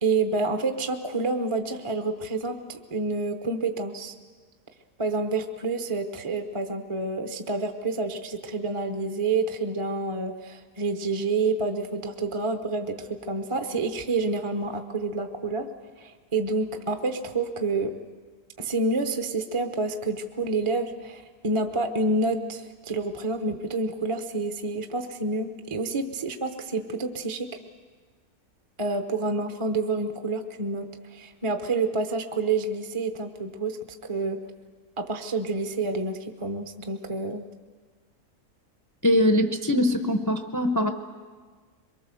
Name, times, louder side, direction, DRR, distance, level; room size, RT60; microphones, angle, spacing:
voice 1, 0.0-4.1 5.0-15.7 16.0-18.0 18.6-27.6 28.8-33.8 34.0-34.4 35.0-37.4, right 3 dB, 25° right, 6 dB, 0.8 m, -28 dB
voice 2, 39.0-40.9, left 1 dB, 15° left, 6 dB, 0.7 m, -22 dB
23.5 x 22.5 x 7.0 m, 1.5 s
omnidirectional pair, 1.7 m